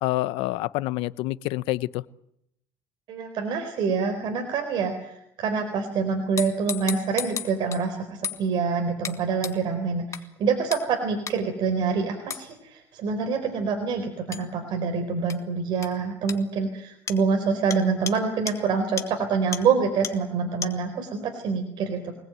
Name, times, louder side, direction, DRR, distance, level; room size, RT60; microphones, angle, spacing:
voice 1, 0.0-2.0, left 18 dB, 75° left, 17 dB, 0.9 m, -27 dB
voice 2, 3.1-22.1, right 5 dB, 55° right, 5 dB, 4.4 m, -26 dB
sound 1, 6.4-7.8 8.2-8.4 9.0-9.2 9.4-9.6 10.1-10.2 10.7-10.9 11.3-11.4 12.3-12.4 14.3-14.4 15.3-15.4 15.8-15.9 16.3-16.4 17.1-17.2 17.7-17.8 18.1-18.2 18.5-18.6 19.0-19.1 19.5-19.6 20.0-20.1 20.6-20.7, left 7 dB, 35° left, 2.1 m, -32 dB
25.5 x 19.5 x 9.2 m, 0.76 s
cardioid pair, 125°, 9 cm